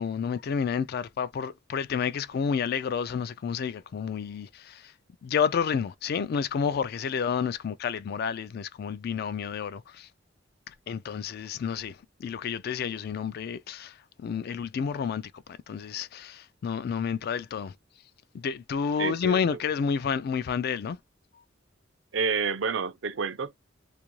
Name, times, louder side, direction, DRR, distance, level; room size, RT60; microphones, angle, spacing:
voice 1, 0.0-4.9 5.2-10.1 10.7-17.8 18.3-21.0, left 6 dB, 50° left, 0.3 m, -30 dB
voice 2, 19.0-19.6 22.1-23.5, right 5 dB, 70° right, 0.5 m, -29 dB
2.6 x 2.4 x 3.0 m
head